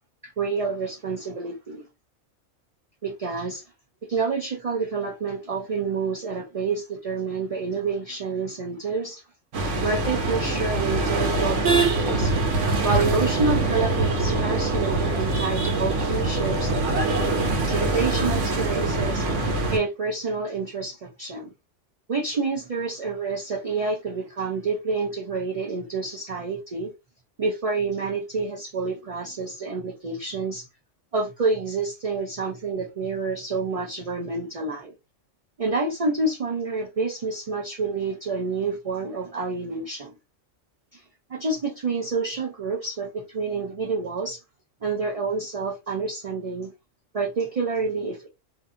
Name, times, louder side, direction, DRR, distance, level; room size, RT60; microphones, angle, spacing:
voice 1, 0.4-1.8 3.0-3.6 4.1-9.2 9.8-12.4 12.8-16.8 17.7-21.5 22.1-26.9 27.4-30.7 31.1-34.9 35.6-40.1 40.9-41.0 41.3-44.4 44.8-46.7 47.1-48.3, right 4 dB, 55° right, 0.4 m, -28 dB
sound 1, 9.5-19.8, right 2 dB, 75° right, 1.1 m, -24 dB
2.5 x 2.5 x 2.5 m
omnidirectional pair, 1.3 m